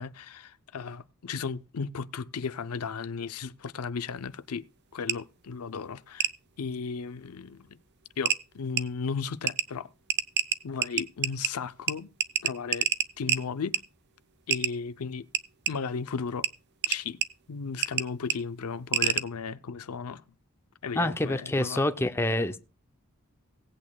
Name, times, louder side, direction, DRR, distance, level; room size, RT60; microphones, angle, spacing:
voice 1, 0.0-4.7 4.9-6.3 6.6-7.8 8.2-9.9 10.6-12.1 12.4-12.9 13.2-13.8 14.5-15.3 15.7-16.5 16.9-17.2 17.5-20.2 20.8-21.8, left 5 dB, 85° left, 0.6 m, -35 dB
sound 1, 5.1-5.2 6.2-6.3 7.7-7.8 8.3-8.4 8.8-8.9 9.5-9.7 10.1-11.5 11.9-12.0 12.2-13.4 13.7-13.8 14.5-14.7 15.3-15.7 16.4-16.5 16.8-17.3 17.8-18.1 18.3-18.4 18.9-19.2, right 9 dB, 50° right, 0.6 m, -26 dB
voice 2, 20.9-22.6, left 1 dB, 10° left, 0.5 m, -27 dB
18.0 x 8.5 x 2.3 m
head